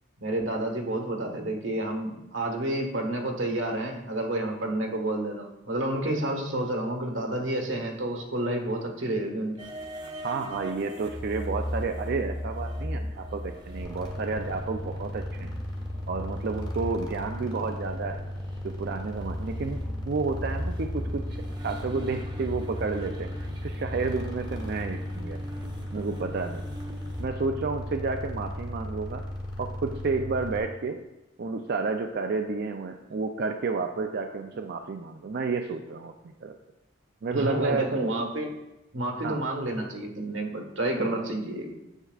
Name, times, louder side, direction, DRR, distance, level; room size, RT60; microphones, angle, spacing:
voice 1, 0.2-9.6 37.3-38.5 38.9-41.7, right 1 dB, 90° right, 1 dB, 1.4 m, -30 dB
sound 1, 9.6-27.2, equal, 25° right, 0.8 m, -38 dB
voice 2, 10.2-15.5 16.1-18.2 18.6-19.8 20.1-21.2 21.6-25.4 25.9-26.6 27.2-29.2 29.6-31.0 31.4-36.5 37.2-37.9 39.2-39.4, right 4 dB, 55° right, 4 dB, 0.4 m, -31 dB
sound 2, 13.8-30.6, left 1 dB, 25° left, 1.3 m, -36 dB
9.9 x 7.3 x 2.4 m, 0.97 s
head